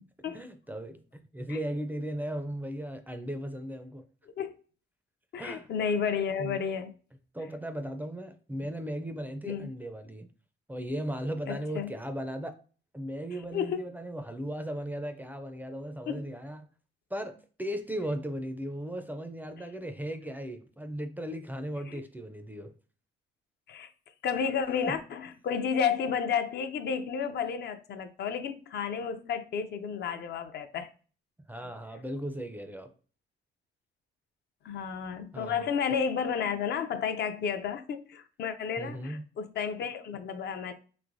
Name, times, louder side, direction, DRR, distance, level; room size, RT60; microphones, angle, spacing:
voice 1, 0.3-4.1 5.4-5.7 6.4-6.6 7.3-10.3 10.7-12.5 12.9-16.7 17.1-22.7 31.5-32.9 35.3-35.7 38.8-39.2, equal, 10° right, 0.4 m, -37 dB
voice 2, 5.3-6.9 9.5-9.7 11.5-11.9 13.5-13.9 16.1-16.3 21.9-22.0 23.7-23.9 24.2-30.9 34.6-40.7, left 7 dB, 60° left, 0.4 m, -32 dB
3.1 x 2.9 x 2.5 m
cardioid pair, 90°, 20 cm